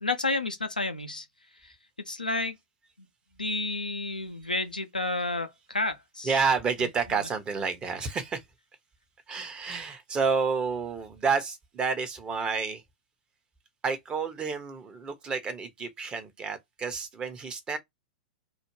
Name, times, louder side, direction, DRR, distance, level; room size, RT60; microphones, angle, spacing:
voice 1, 0.0-1.3 2.1-2.6 3.4-6.3, left 2 dB, 90° left, 0.4 m, -30 dB
voice 2, 6.2-8.4 9.3-12.8 13.8-17.8, right 5 dB, 20° right, 0.8 m, -30 dB
2.4 x 2.1 x 3.1 m
figure-of-eight pair, 95°, 4 cm